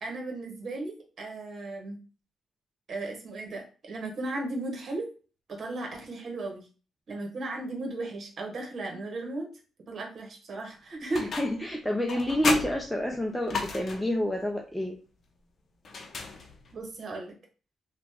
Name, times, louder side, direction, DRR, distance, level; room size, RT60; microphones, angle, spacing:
voice 1, 0.0-2.0 2.9-5.1 5.5-6.6 7.1-9.5 9.9-11.3 16.7-17.3, right 2 dB, 55° right, 1 dB, 1.3 m, -35 dB
sound 1, 11.1-11.7 12.1-14.2 15.8-16.8, left 3 dB, 55° left, 0.7 m, -34 dB
voice 2, 11.1-15.0, equal, 5° left, 1 dB, 0.6 m, -28 dB
3.0 x 2.4 x 3.6 m, 0.35 s
supercardioid pair, 55°, 0 cm